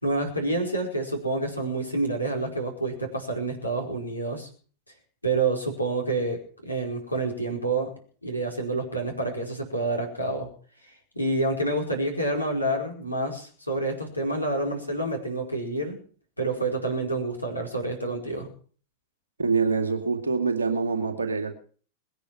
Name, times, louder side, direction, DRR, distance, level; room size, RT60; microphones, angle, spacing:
voice 1, 0.0-4.5 5.2-7.9 8.2-10.5 11.2-16.0 16.4-18.5, right 2 dB, 85° left, 5.0 m, -28 dB
voice 2, 19.4-21.5, right 4 dB, 75° right, 2.5 m, -25 dB
21.0 x 10.0 x 6.1 m
figure-of-eight pair, 90°, 0 cm